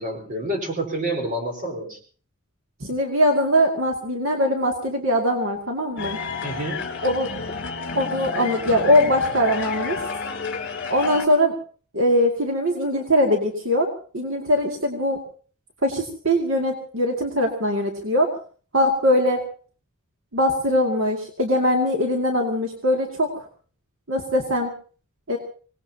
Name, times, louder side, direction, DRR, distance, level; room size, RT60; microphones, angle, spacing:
voice 1, 0.0-2.0 6.4-6.8, right 1 dB, 40° right, 3 dB, 4.6 m, -28 dB
voice 2, 2.8-6.2 7.0-7.3 7.9-10.0 10.9-11.5 11.9-13.9 14.1-15.2 15.8-18.3 18.7-19.4 20.3-23.4 24.1-24.7 25.3-25.4, left 1 dB, 70° right, 1 dB, 2.4 m, -21 dB
sound 1, 6.0-11.3, left 4 dB, 55° left, 3.2 m, -30 dB
26.0 x 19.0 x 2.9 m, 0.41 s
head